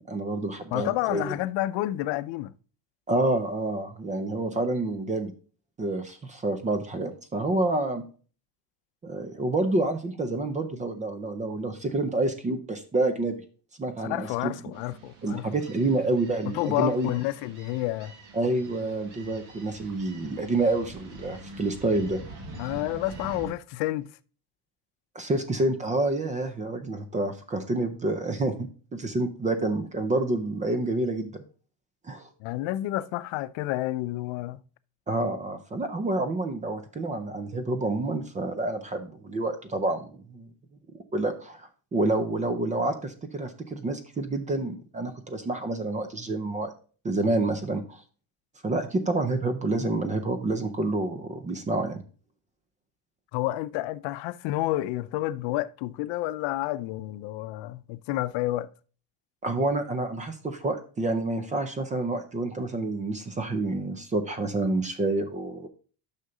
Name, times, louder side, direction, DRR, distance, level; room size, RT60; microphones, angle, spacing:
voice 1, 0.1-1.4 3.1-5.3 5.8-8.0 9.0-13.3 13.8-14.5 15.2-17.1 18.3-22.2 25.2-31.4 32.0-32.3 35.1-40.5 41.1-46.7 47.0-48.0 48.6-52.0 59.4-65.7, right 2 dB, 20° right, 0.4 m, -28 dB
voice 2, 0.7-2.5 14.1-15.6 16.5-18.1 22.5-24.1 32.4-34.6 53.3-58.7, left 16 dB, 80° left, 0.6 m, -30 dB
sound 1, 14.7-23.5, right 2 dB, 45° right, 1.5 m, -45 dB
6.4 x 5.9 x 3.8 m
cardioid pair, 175°, 44 cm